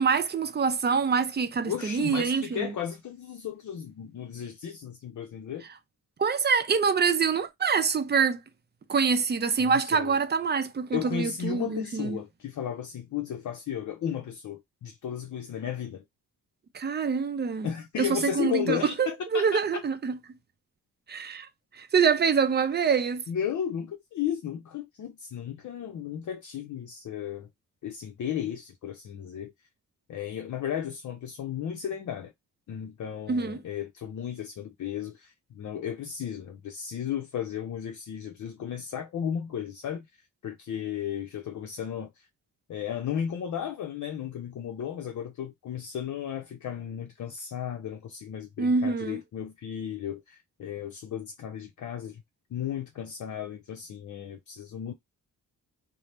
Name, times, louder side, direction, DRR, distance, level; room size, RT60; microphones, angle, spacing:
voice 1, 0.0-2.7 6.2-8.4 8.9-12.2 16.7-17.7 18.0-20.2 21.1-21.5 21.7-23.2 33.3-33.6 48.6-49.2, right 5 dB, 30° right, 0.5 m, -25 dB
voice 2, 1.7-5.7 9.6-10.2 10.9-16.0 17.6-19.6 23.3-27.5 27.8-29.5 30.1-32.3 32.7-40.1 40.4-42.2 42.7-52.2 52.5-54.9, left 9 dB, 55° left, 0.5 m, -34 dB
2.8 x 2.0 x 3.2 m
cardioid pair, 105°, 36 cm